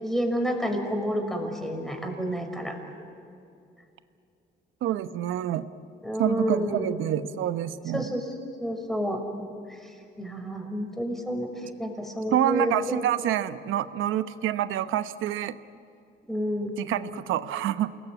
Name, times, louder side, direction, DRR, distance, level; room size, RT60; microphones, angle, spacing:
voice 1, 0.0-2.8 6.0-6.9 7.9-8.3 8.6-9.2 9.7-9.9 10.2-11.5 11.8-13.0 16.3-16.7, equal, ahead, 3 dB, 5.7 m, -29 dB
voice 2, 4.8-5.7 6.2-8.0 12.3-15.6 16.8-17.9, right 12 dB, 90° right, 12 dB, 1.0 m, -27 dB
28.0 x 21.0 x 9.5 m, 2.6 s
cardioid pair, 90°, 20 cm